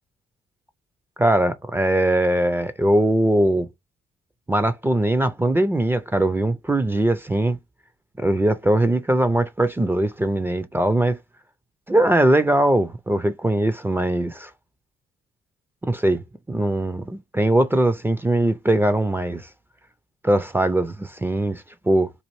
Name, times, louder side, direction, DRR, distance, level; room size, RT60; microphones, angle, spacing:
voice 1, 1.2-3.7 4.5-7.6 8.2-11.2 11.9-14.5 15.8-19.5 20.2-22.1, right 1 dB, 10° right, 0.4 m, -21 dB
4.1 x 2.5 x 3.0 m
cardioid pair, 90°, 20 cm